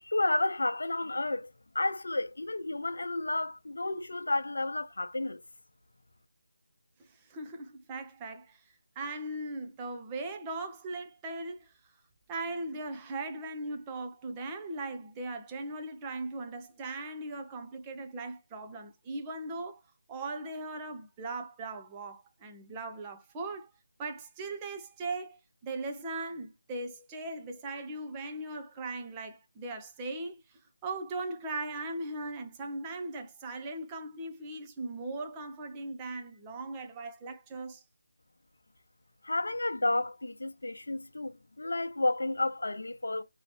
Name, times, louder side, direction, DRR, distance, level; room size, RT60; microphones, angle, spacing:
voice 1, 0.0-1.5 1.7-5.4 39.2-43.2, left 2 dB, 65° left, 0.8 m, -31 dB
voice 2, 7.0-8.6 9.0-11.7 12.3-19.8 20.1-23.7 24.0-37.8, right 2 dB, 15° right, 0.6 m, -39 dB
3.0 x 2.9 x 4.3 m
figure-of-eight pair, 155°, 0 cm